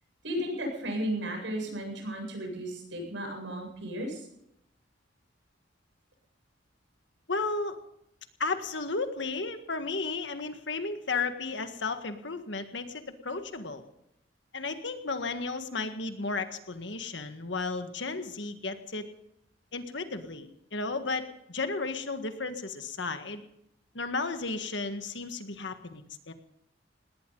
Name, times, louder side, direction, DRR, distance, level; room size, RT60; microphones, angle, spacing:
voice 1, 0.2-4.3, equal, 75° right, 1 dB, 7.7 m, -34 dB
voice 2, 7.3-7.7 8.4-13.8 14.5-19.0 19.7-21.2 21.5-23.4 23.9-26.3, left 3 dB, 70° left, 7 dB, 1.7 m, -34 dB
19.5 x 18.5 x 4.0 m, 0.78 s
head